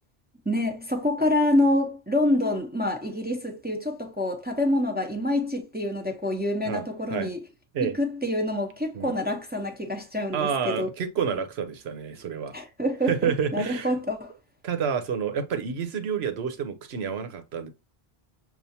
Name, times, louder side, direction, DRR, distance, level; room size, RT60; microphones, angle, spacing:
voice 1, 0.5-7.4 8.0-10.9 12.5-14.3, left 1 dB, 10° right, 0.8 m, -26 dB
voice 2, 10.3-12.5 13.1-13.9 14.6-17.7, right 6 dB, 85° right, 1.0 m, -29 dB
6.8 x 2.5 x 2.7 m
omnidirectional pair, 1.0 m